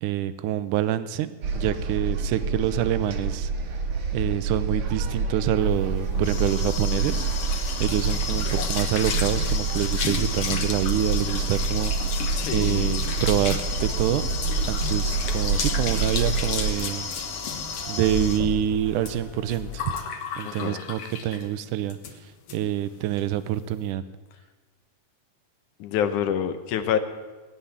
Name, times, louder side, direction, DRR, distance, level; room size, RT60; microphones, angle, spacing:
voice 1, 0.0-3.5 4.1-7.3 7.8-11.9 12.5-14.3 14.7-17.1 17.9-19.9 20.4-22.0 22.5-24.0, right 11 dB, 80° right, 14 dB, 2.1 m, -26 dB
sound 1, 1.4-16.7, right 4 dB, 55° right, 1.7 m, -27 dB
sound 2, 5.8-21.5 21.9-22.1 22.5-22.6 22.9-23.2, left 6 dB, 55° left, 1.9 m, -32 dB
voice 2, 12.4-13.0 20.4-20.8 25.8-27.0, left 9 dB, 75° left, 9 dB, 2.3 m, -27 dB
sound 3, 13.8-20.0, left 4 dB, 30° left, 1.9 m, -40 dB
17.0 x 9.9 x 7.3 m, 1.2 s
omnidirectional pair, 3.7 m